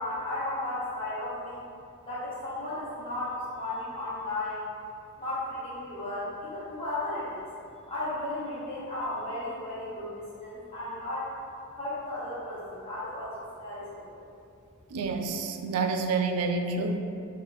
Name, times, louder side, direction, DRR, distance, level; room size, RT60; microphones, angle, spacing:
voice 1, 0.0-1.6 2.1-4.7 5.2-7.5 7.9-11.3 11.7-14.2, left 1 dB, 25° left, -11 dB, 1.0 m, -34 dB
voice 2, 14.9-17.0, right 4 dB, 80° right, 5 dB, 0.3 m, -28 dB
3.0 x 2.3 x 3.9 m, 2.5 s
head